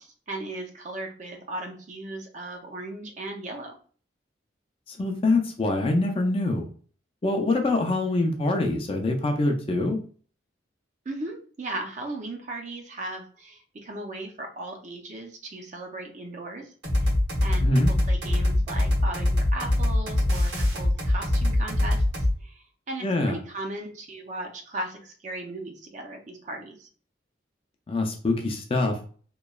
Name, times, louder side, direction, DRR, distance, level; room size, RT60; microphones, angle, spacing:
voice 1, 0.0-3.8 11.1-16.7 17.0-17.1 17.4-22.0 22.4-26.9, right 2 dB, 40° right, 2 dB, 0.5 m, -37 dB
voice 2, 4.9-6.7 7.2-10.0 17.6-17.9 23.0-23.4 27.9-29.0, left 2 dB, 30° left, 3 dB, 0.4 m, -24 dB
sound 1, 16.8-22.3, left 1 dB, 75° right, 1.1 m, -23 dB
3.0 x 2.2 x 2.3 m, 0.43 s
head